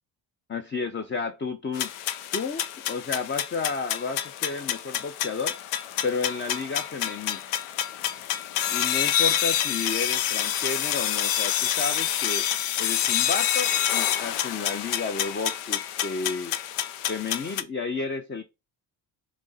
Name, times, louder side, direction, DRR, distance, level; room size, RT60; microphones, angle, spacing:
voice 1, 0.5-1.9 2.3-5.6 6.0-7.4 8.7-12.4 12.8-16.5 17.1-18.4, left 4 dB, 25° left, 7 dB, 0.6 m, -32 dB
sound 1, 1.7-17.6, left 11 dB, 85° left, 0.6 m, -28 dB
6.1 x 2.1 x 4.1 m, 0.25 s
supercardioid pair, 60°, 49 cm